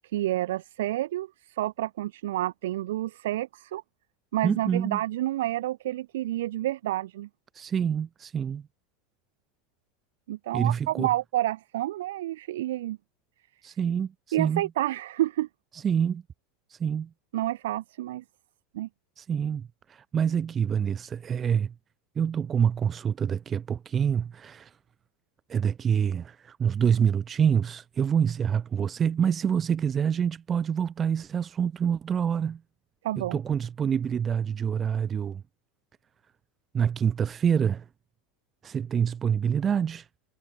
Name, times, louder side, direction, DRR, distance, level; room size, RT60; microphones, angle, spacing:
voice 1, 0.1-3.8 4.3-7.3 10.3-13.0 14.3-15.5 17.3-18.2 18.7-18.9 33.0-33.4, right 14 dB, 80° right, 2.8 m, -29 dB
voice 2, 4.4-5.0 7.5-8.7 10.5-11.1 13.6-14.1 14.4-14.6 15.7-16.2 16.7-17.1 19.2-21.7 22.2-24.7 25.5-32.6 33.2-35.4 36.7-37.9 38.6-40.1, right 7 dB, 30° right, 2.3 m, -26 dB
supercardioid pair, 110°, 0 cm